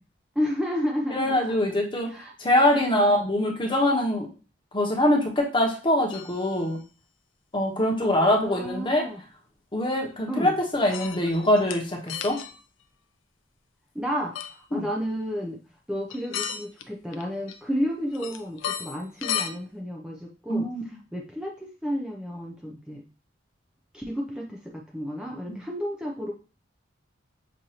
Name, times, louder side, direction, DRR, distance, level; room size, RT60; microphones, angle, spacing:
voice 1, 0.4-1.6 2.1-2.3 2.9-3.2 8.0-9.2 10.3-10.5 13.9-15.6 15.9-23.0 23.9-26.3, equal, 5° right, -1 dB, 0.4 m, -32 dB
voice 2, 1.1-2.1 2.4-4.3 4.7-6.8 7.5-9.0 9.7-12.4 14.7-14.8 20.5-20.8 25.5-25.6, left 1 dB, 25° left, 1 dB, 1.0 m, -23 dB
sound 1, 6.1-6.6 7.9-8.0 8.6-8.7 10.9-11.8 12.1-12.6 14.3-14.5 16.1-16.8 17.1-17.8 18.1-19.5, left 9 dB, 85° left, 0.5 m, -34 dB
6.2 x 2.6 x 2.8 m, 0.36 s
head